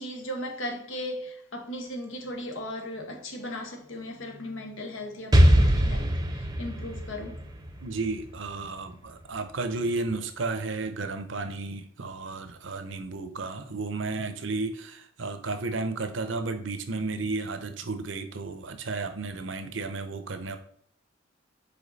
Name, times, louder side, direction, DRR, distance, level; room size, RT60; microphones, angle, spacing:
voice 1, 0.0-7.5, left 1 dB, 85° left, 1.2 m, -37 dB
Explosion, 5.3-9.1, equal, 20° right, 0.7 m, -23 dB
voice 2, 7.8-20.6, right 3 dB, 70° right, 0.7 m, -33 dB
5.2 x 4.5 x 4.1 m
head